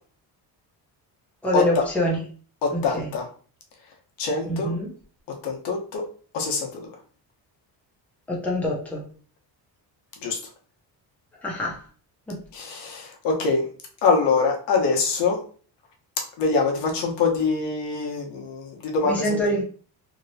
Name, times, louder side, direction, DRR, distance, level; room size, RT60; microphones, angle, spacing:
voice 1, 1.4-2.2 2.7-3.1 4.5-4.9 8.3-9.0 11.4-11.8 12.3-12.4 19.0-19.6, left 1 dB, 5° left, -4 dB, 0.7 m, -25 dB
voice 2, 2.6-3.2 4.2-4.7 5.4-6.0 6.3-6.9 10.2-10.4 12.5-13.6 14.0-15.4 16.4-19.4, left 4 dB, 70° left, 1 dB, 1.0 m, -24 dB
3.0 x 2.8 x 2.7 m, 0.42 s
cardioid pair, 165°, 43 cm